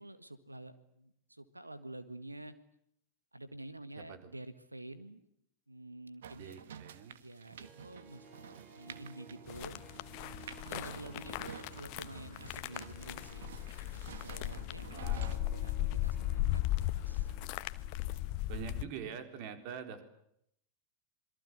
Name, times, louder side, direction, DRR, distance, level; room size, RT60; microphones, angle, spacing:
voice 1, 0.0-2.5 3.3-5.2 5.7-6.6 7.2-9.8 10.6-13.5 14.1-16.6 16.9-17.3, right 1 dB, 85° right, 13 dB, 1.7 m, -49 dB
voice 2, 4.0-4.3 6.4-7.2 14.9-15.4 17.3-17.5 18.5-20.0, right 7 dB, 45° right, 8 dB, 4.0 m, -45 dB
sound 1, 6.2-15.4, right 8 dB, 60° right, 1.6 m, -51 dB
Harp, 7.4-18.4 18.7-18.8, right 4 dB, 25° right, 3.8 m, -58 dB
Crunching Snow Edited, 9.5-18.9, left 15 dB, 45° left, 1.1 m, -37 dB
27.5 x 22.5 x 8.0 m, 0.74 s
figure-of-eight pair, 90°, 0 cm